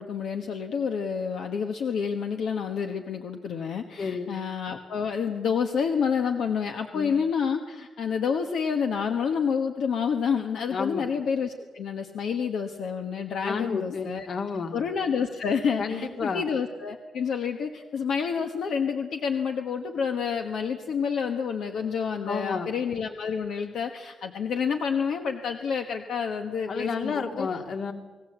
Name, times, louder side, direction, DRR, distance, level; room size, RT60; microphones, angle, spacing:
voice 1, 0.0-14.3 14.7-27.5, left 6 dB, 75° left, 5 dB, 1.3 m, -29 dB
voice 2, 4.0-4.4 6.9-7.1 10.7-11.1 13.4-14.8 15.8-16.4 22.2-22.7 26.7-27.9, left 5 dB, 55° left, 5 dB, 2.3 m, -31 dB
29.5 x 18.5 x 8.1 m, 1.4 s
cardioid pair, 130°, 0 cm